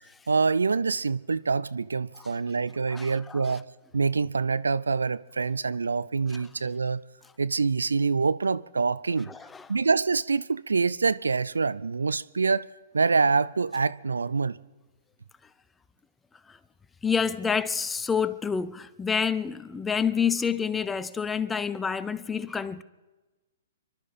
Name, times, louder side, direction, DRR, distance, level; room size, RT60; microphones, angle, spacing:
voice 1, 0.3-3.6 3.9-7.0 7.4-9.3 9.7-12.6 12.9-14.6, right 4 dB, 85° right, 0.4 m, -25 dB
voice 2, 2.9-3.6 6.3-6.4 9.3-9.7 16.5-16.6 17.0-22.8, left 6 dB, 10° left, 0.6 m, -28 dB
27.0 x 12.5 x 4.3 m
hypercardioid pair, 120°, 0 cm